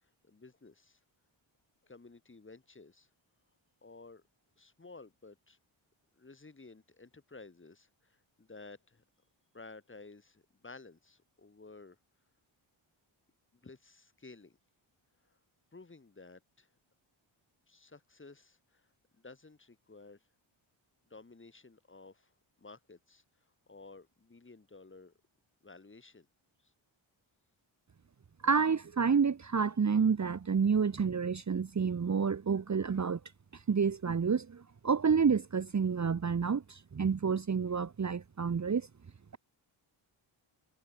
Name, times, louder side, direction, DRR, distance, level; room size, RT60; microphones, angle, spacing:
voice 1, 0.0-1.0 1.8-3.1 3.8-4.2 4.6-5.6 6.2-9.0 9.5-12.0 13.5-14.6 15.2-15.4 15.7-16.7 17.7-18.9 19.1-20.2 21.1-22.3 22.6-23.2 23.7-25.1 25.6-26.3 26.6-26.7, left 3 dB, 25° left, 5.9 m, -54 dB
voice 2, 28.4-33.2 33.5-38.9, right 6 dB, 35° right, 1.4 m, -29 dB
wide cardioid pair, 155°, 49 cm